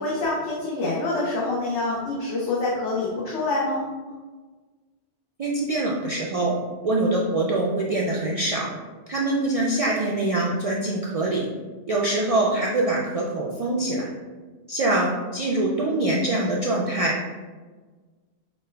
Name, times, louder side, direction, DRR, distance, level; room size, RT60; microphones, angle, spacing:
voice 1, 0.0-3.9, left 2 dB, 90° left, -5 dB, 1.0 m, -26 dB
voice 2, 5.4-6.5 6.8-8.7 9.1-11.4 11.9-14.1 14.7-17.3, right 2 dB, 65° right, -3 dB, 0.3 m, -24 dB
5.2 x 2.2 x 3.3 m, 1.4 s
omnidirectional pair, 1.1 m